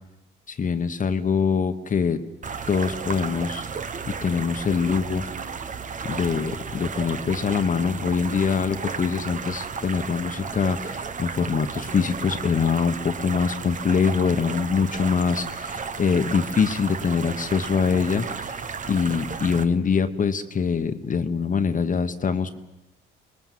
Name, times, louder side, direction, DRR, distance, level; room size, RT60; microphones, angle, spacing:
voice 1, 0.5-2.2 2.7-3.6 4.1-5.3 6.0-18.5 18.9-22.5, left 6 dB, 40° left, 7 dB, 1.3 m, -24 dB
sound 1, 2.4-19.6, right 5 dB, 40° right, 1.2 m, -34 dB
26.0 x 20.5 x 7.6 m, 1.0 s
cardioid pair, 90°, 20 cm